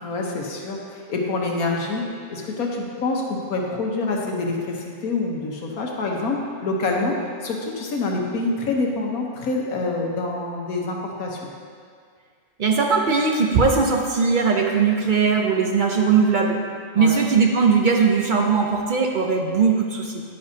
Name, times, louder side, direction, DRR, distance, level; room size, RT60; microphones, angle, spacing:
voice 1, 0.0-2.0 2.3-11.5 17.0-17.2, left 3 dB, 75° left, 0 dB, 1.5 m, -26 dB
voice 2, 12.6-16.6 16.9-20.2, right 5 dB, 50° right, 1 dB, 0.6 m, -19 dB
10.0 x 9.6 x 2.8 m, 2.1 s
omnidirectional pair, 1.5 m